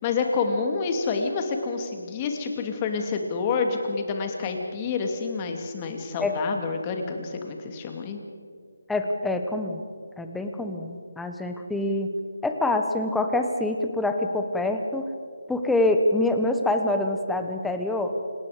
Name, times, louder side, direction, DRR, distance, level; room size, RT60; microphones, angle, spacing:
voice 1, 0.0-8.2, left 4 dB, 20° left, 4 dB, 2.4 m, -28 dB
voice 2, 8.9-9.8 10.2-12.1 12.4-15.0 15.5-18.2, left 2 dB, 5° left, 5 dB, 1.2 m, -25 dB
28.5 x 18.0 x 5.1 m, 2.1 s
figure-of-eight pair, 160°, 0 cm